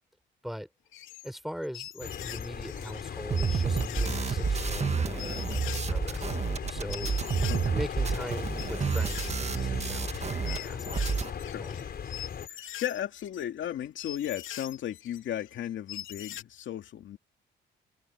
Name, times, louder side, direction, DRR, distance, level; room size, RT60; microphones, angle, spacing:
sound 1, 0.9-1.4 1.6-3.1 3.4-4.8 5.2-5.9 6.1-16.4, left 12 dB, 90° left, 2.5 m, -43 dB
voice 1, 1.2-6.3 6.7-7.2 7.7-11.1 11.5-11.9, equal, ahead, 5.7 m, -41 dB
sound 2, 2.0-12.5, left 7 dB, 55° left, 4.5 m, -38 dB
sound 3, 3.3-10.6 10.8-11.3, right 5 dB, 35° right, 1.6 m, -30 dB
voice 2, 12.5-17.2, left 11 dB, 70° left, 2.5 m, -35 dB
cardioid pair, 90°, 20 cm